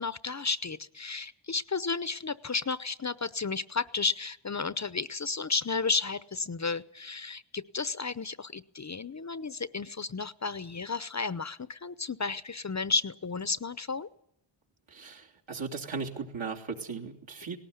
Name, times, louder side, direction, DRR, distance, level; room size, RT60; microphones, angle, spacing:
voice 1, 0.0-14.1, left 4 dB, 35° left, 15 dB, 0.8 m, -33 dB
voice 2, 14.9-17.6, right 4 dB, 65° right, -1 dB, 3.3 m, -37 dB
18.5 x 18.0 x 9.6 m, 0.72 s
wide cardioid pair, 100°, 50 cm